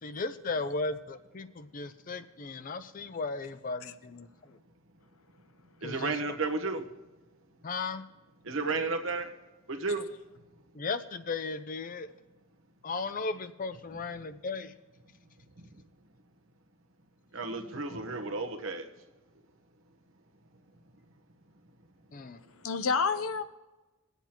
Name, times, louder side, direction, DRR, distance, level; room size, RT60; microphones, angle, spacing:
voice 1, 0.0-4.3 5.8-6.1 7.6-8.0 10.7-12.1 12.8-14.7 22.1-22.4, left 3 dB, 40° left, 12 dB, 0.5 m, -36 dB
voice 2, 5.8-6.8 8.4-9.3 9.7-10.0 13.9-14.0 17.3-18.9, right 3 dB, 70° right, 4 dB, 1.1 m, -32 dB
voice 3, 22.5-23.4, left 5 dB, 90° left, 11 dB, 0.7 m, -30 dB
21.5 x 8.1 x 2.9 m, 1.1 s
head